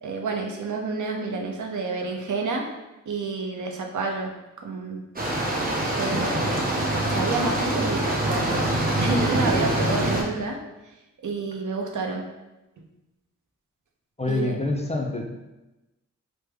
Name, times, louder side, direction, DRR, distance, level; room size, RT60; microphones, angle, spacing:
voice 1, 0.0-2.7 3.1-4.3 4.6-5.0 6.0-6.4 7.1-8.7 9.0-10.6 11.2-12.3 14.3-14.6, right 3 dB, 65° right, 2 dB, 0.6 m, -29 dB
sound 1, 5.2-10.2, right 1 dB, 25° right, 0.8 m, -24 dB
voice 2, 14.2-15.2, left 2 dB, 20° left, 1 dB, 0.4 m, -26 dB
3.2 x 2.1 x 3.3 m, 1.0 s
cardioid pair, 55°, 32 cm